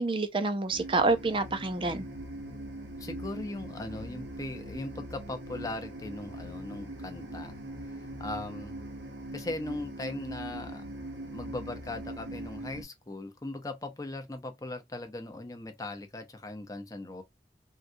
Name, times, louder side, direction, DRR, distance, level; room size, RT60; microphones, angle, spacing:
voice 1, 0.0-2.0, right 3 dB, 30° right, 0.5 m, -27 dB
sound 1, 0.7-12.8, right 1 dB, 85° right, 0.9 m, -41 dB
voice 2, 3.0-7.6 7.9-8.8 9.3-10.8 11.3-17.2, left 2 dB, 20° left, 0.6 m, -39 dB
3.7 x 2.3 x 2.7 m
head